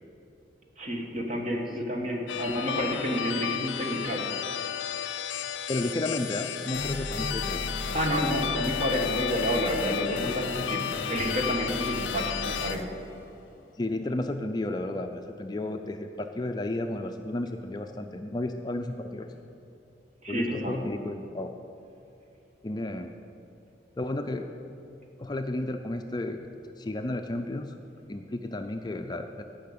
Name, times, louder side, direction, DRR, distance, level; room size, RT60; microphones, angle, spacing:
voice 1, 0.8-4.3 7.9-12.8 20.2-20.8, equal, 40° right, 1 dB, 1.4 m, -30 dB
sound 1, 2.3-12.8, left 9 dB, 85° left, 0.5 m, -33 dB
voice 2, 5.7-7.8 13.8-19.3 20.3-21.6 22.6-23.1 24.0-24.5 25.2-26.4 26.8-27.8 28.1-29.4, left 2 dB, 25° left, 5 dB, 0.4 m, -32 dB
sound 2, 6.7-14.2, left 2 dB, 50° left, 0.7 m, -37 dB
10.5 x 5.6 x 8.5 m, 2.7 s
head